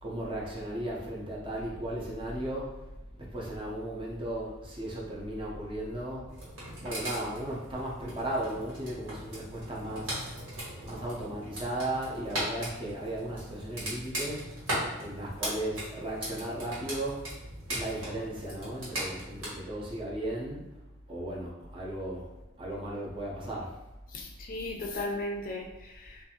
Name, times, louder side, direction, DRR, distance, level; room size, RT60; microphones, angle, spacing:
voice 1, 0.0-2.8 3.2-6.3 6.8-10.2 10.8-14.5 15.0-17.2 17.7-20.7 21.1-22.3 22.6-23.7, right 1 dB, 25° right, -4 dB, 0.5 m, -36 dB
sound 1, 6.3-19.5, right 1 dB, 85° right, 1.4 m, -39 dB
voice 2, 24.1-26.2, left 2 dB, 40° left, 0 dB, 0.4 m, -36 dB
2.6 x 2.4 x 2.7 m, 1.0 s
head